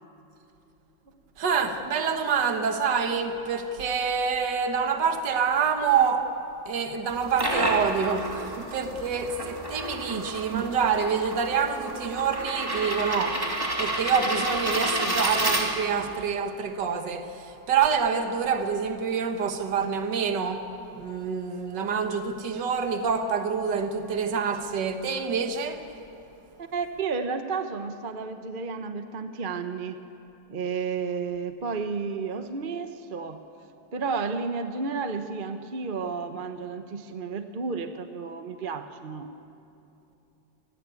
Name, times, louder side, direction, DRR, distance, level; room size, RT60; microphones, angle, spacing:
voice 1, 1.4-6.3 6.7-13.4 13.8-20.7 20.9-25.8, right 6 dB, 65° right, 2.1 m, -26 dB
sound 1, 7.1-16.1, right 1 dB, 10° right, 2.9 m, -30 dB
voice 2, 26.6-30.0 30.5-33.4 33.9-39.3, right 5 dB, 35° right, 0.9 m, -32 dB
30.0 x 20.0 x 8.4 m
omnidirectional pair, 2.1 m